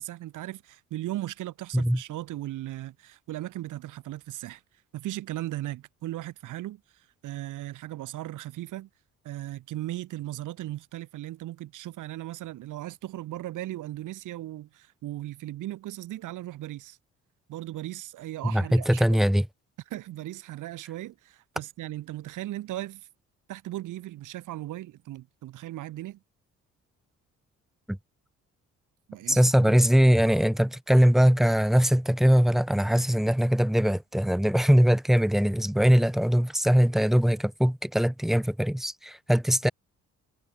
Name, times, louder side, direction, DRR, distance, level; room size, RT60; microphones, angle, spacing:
voice 1, 0.0-4.6 4.9-8.9 9.2-17.0 17.5-19.2 19.9-23.1 23.5-26.2 29.1-29.8, right 15 dB, 85° right, 6.4 m, -37 dB
voice 2, 18.4-19.5 27.9-28.0 29.3-39.7, equal, ahead, 0.6 m, -21 dB
cardioid pair, 90°, 30 cm